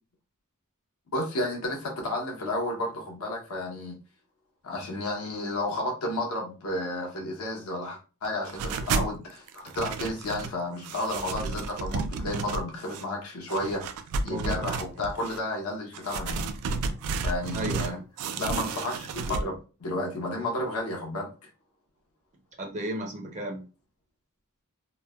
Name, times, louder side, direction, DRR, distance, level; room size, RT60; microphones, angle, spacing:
voice 1, 1.1-4.0 4.6-13.8 14.2-16.5 17.2-18.0 18.4-19.5 19.8-21.3, left 1 dB, 70° left, 0 dB, 0.7 m, -32 dB
sound 1, 8.5-9.2 9.5-10.6 10.8-13.0 13.5-15.4 15.9-17.9 18.2-19.4, right 4 dB, 80° right, 0.3 m, -32 dB
voice 2, 14.3-14.8 17.5-18.0 22.6-23.6, right 1 dB, 30° right, 1 dB, 0.6 m, -34 dB
3.0 x 2.1 x 2.2 m, 0.34 s
head